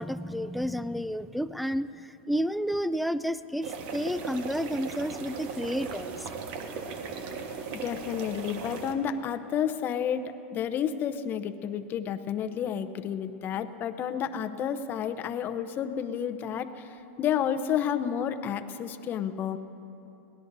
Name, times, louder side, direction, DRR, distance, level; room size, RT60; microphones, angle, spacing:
voice 1, 0.0-6.3, equal, ahead, 12 dB, 0.3 m, -31 dB
sound 1, 3.6-8.9, right 5 dB, 55° right, 1.4 m, -37 dB
voice 2, 7.8-19.6, left 8 dB, 30° left, 10 dB, 0.7 m, -31 dB
22.5 x 18.0 x 2.7 m, 2.9 s
supercardioid pair, 135°, 6 cm